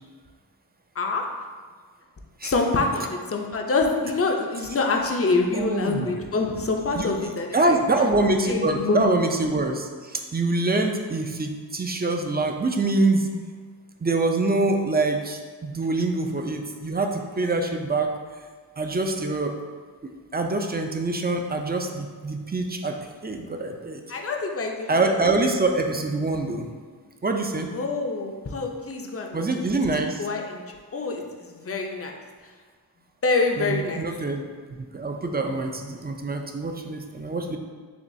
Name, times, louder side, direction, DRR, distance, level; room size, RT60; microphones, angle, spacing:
voice 1, 1.0-1.3 2.4-7.8 8.5-9.2 24.1-25.1 27.7-29.4 29.8-32.1 33.2-34.0, left 3 dB, 35° left, 2 dB, 0.5 m, -26 dB
voice 2, 5.5-6.2 6.9-7.1 7.5-13.3 14.0-18.1 18.8-19.6 20.3-23.0 23.2-24.0 24.9-26.7 27.2-27.7 29.3-30.3 33.6-34.4 34.9-37.6, right 2 dB, 25° right, 4 dB, 0.4 m, -25 dB
6.9 x 2.3 x 2.6 m, 1.5 s
wide cardioid pair, 45°, 41 cm